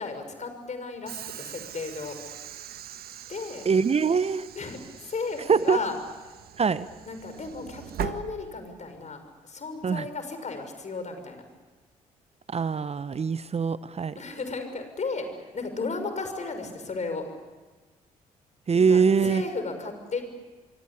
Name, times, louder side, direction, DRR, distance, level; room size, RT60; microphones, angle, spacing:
voice 1, 0.0-2.2 3.3-3.7 4.6-6.0 7.0-11.4 14.2-17.3 18.7-20.2, left 4 dB, 40° left, 7 dB, 6.1 m, -34 dB
Train / Sliding door, 1.1-9.0, right 10 dB, 60° right, 1.4 m, -41 dB
voice 2, 3.6-4.5 5.5-5.8 6.6-6.9 9.8-10.1 12.5-14.2 18.7-19.4, right 5 dB, 35° right, 15 dB, 0.9 m, -23 dB
26.0 x 24.5 x 8.5 m, 1.3 s
hypercardioid pair, 45°, 18 cm